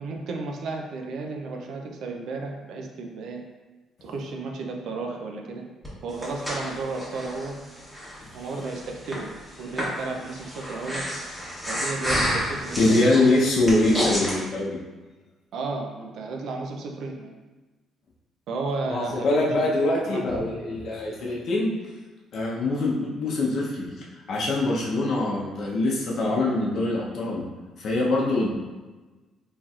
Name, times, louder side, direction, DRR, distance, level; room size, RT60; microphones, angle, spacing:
voice 1, 0.0-3.4 4.0-5.6 6.0-7.6 8.3-9.3 9.6-11.3 11.7-13.2 15.5-17.3 18.5-19.7 20.0-20.5 21.2-21.4, right 3 dB, 70° right, 2 dB, 0.5 m, -33 dB
Breathing, 5.8-14.4, equal, ahead, 1.1 m, -31 dB
voice 2, 12.8-14.8 18.9-21.7 22.3-27.4 27.8-28.5, left 2 dB, 55° left, -4 dB, 0.7 m, -24 dB
4.2 x 3.1 x 2.4 m, 1.2 s
cardioid pair, 125°, 0 cm